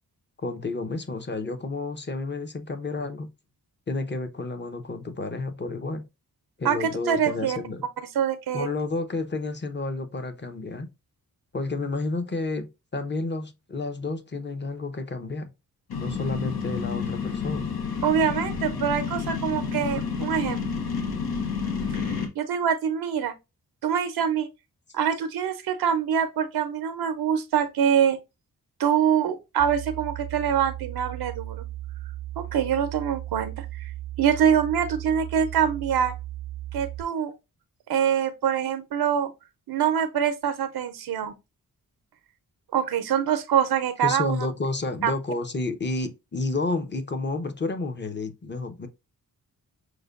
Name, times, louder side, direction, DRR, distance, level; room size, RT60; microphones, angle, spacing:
voice 1, 0.4-3.3 3.9-6.0 6.6-7.9 8.5-10.9 11.5-15.5 16.0-17.8 44.0-48.9, left 3 dB, 30° left, 0.8 m, -30 dB
voice 2, 6.6-7.6 8.1-8.7 18.0-20.6 22.0-23.3 23.8-24.5 24.9-28.2 28.8-31.6 32.4-33.9 34.2-36.2 36.7-37.3 37.9-39.3 39.7-41.3 42.7-44.5 45.0-45.1, right 8 dB, 85° right, 0.6 m, -24 dB
sound 1, 15.9-22.3, left 5 dB, 80° left, 1.0 m, -30 dB
sound 2, 29.6-37.0, right 15 dB, 40° right, 0.5 m, -36 dB
6.4 x 2.2 x 2.4 m
cardioid pair, 70°, 37 cm